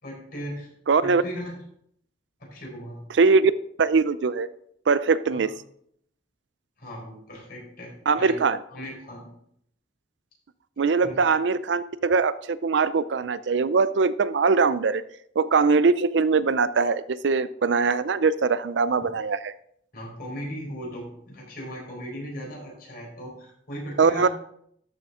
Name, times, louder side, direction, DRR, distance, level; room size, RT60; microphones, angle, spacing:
voice 1, 0.0-0.7 1.0-1.6 2.4-3.0 5.3-5.5 6.8-8.4 8.7-9.3 11.0-11.3 19.9-24.3, equal, 55° left, -2 dB, 4.6 m, -38 dB
voice 2, 0.9-1.2 3.1-3.5 3.8-4.5 4.9-5.5 8.1-8.6 10.8-15.0 15.4-19.5 24.0-24.3, right 4 dB, 80° right, 16 dB, 0.5 m, -21 dB
13.0 x 6.9 x 3.7 m, 0.70 s
head